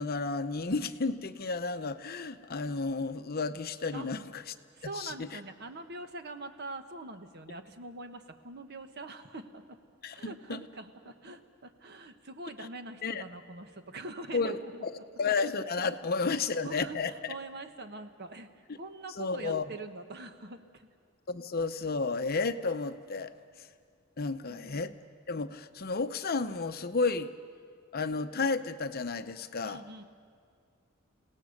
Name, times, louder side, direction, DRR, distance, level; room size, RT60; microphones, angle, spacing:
voice 1, 0.0-4.4 5.0-5.3 10.0-10.6 13.0-13.2 14.3-14.9 15.2-17.1 19.2-19.7 21.3-23.3 24.2-25.0 25.3-27.3 27.9-29.8, left 4 dB, 50° left, 10 dB, 0.8 m, -32 dB
voice 2, 4.7-9.8 10.1-14.9 15.2-15.3 16.2-20.9 24.5-24.8 29.6-30.1, right 2 dB, 55° right, 8 dB, 1.2 m, -44 dB
29.5 x 18.0 x 6.6 m, 2.2 s
head